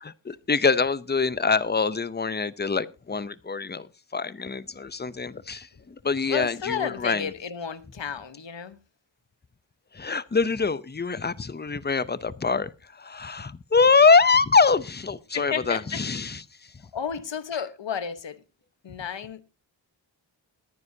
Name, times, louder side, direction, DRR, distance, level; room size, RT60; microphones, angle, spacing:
voice 1, 0.2-7.3 9.9-16.7, left 4 dB, 20° left, 0.6 m, -24 dB
voice 2, 6.3-8.8 15.3-16.0 16.9-18.4 18.8-19.4, left 7 dB, 70° left, 1.2 m, -32 dB
21.0 x 9.8 x 2.8 m
wide cardioid pair, 75°, 47 cm